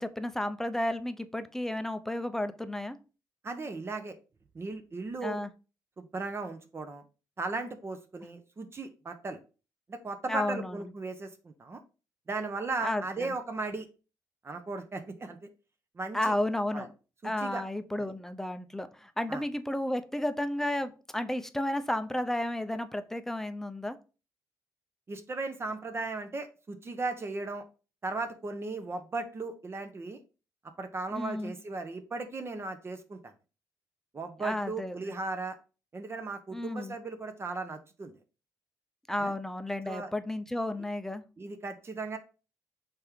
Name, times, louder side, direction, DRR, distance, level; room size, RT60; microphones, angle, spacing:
voice 1, 0.0-3.0 5.2-5.5 10.3-10.8 12.8-13.3 16.1-16.9 17.2-24.0 31.1-31.5 34.4-35.1 36.5-37.0 39.1-41.2, left 1 dB, 5° left, 0.5 m, -32 dB
voice 2, 3.4-4.2 4.5-5.4 6.0-7.0 7.4-9.4 9.9-11.8 12.3-13.9 14.4-15.5 15.9-16.3 16.7-16.9 17.2-17.6 18.0-18.1 19.3-19.4 25.1-27.6 28.0-30.2 30.8-33.3 34.1-35.6 35.9-38.1 39.2-39.3 39.8-40.1 40.7-40.8 41.4-42.2, right 3 dB, 35° right, 0.7 m, -37 dB
4.3 x 3.4 x 3.5 m
cardioid pair, 80°, 8 cm